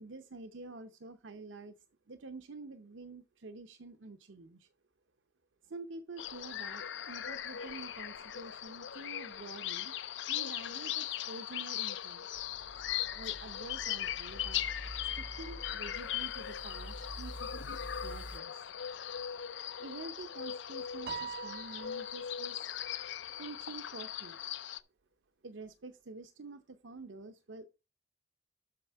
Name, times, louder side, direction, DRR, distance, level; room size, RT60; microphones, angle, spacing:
voice 1, 0.0-1.8 2.1-4.7 5.6-9.9 10.3-12.3 13.1-14.6 15.1-18.6 19.8-22.7 23.4-24.4 25.4-27.7, right 3 dB, 80° right, 0.7 m, -48 dB
sound 1, 6.2-24.8, left 10 dB, 75° left, 0.5 m, -39 dB
sound 2, 12.3-18.4, equal, 25° left, 0.5 m, -48 dB
Piano, 21.1-22.6, right 7 dB, 50° right, 0.4 m, -43 dB
7.7 x 6.3 x 4.6 m
head